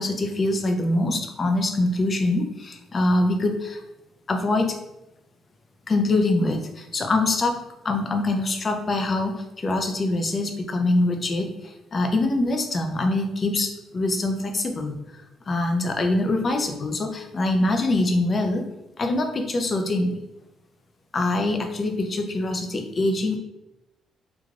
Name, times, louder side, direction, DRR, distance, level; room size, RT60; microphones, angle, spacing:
voice 1, 0.0-3.8 4.3-4.8 5.9-7.6 7.8-15.0 15.5-18.6 19.0-20.2 21.1-23.4, left 2 dB, 40° left, 4 dB, 0.5 m, -24 dB
3.2 x 2.2 x 2.5 m, 0.90 s
cardioid pair, 90°, 0 cm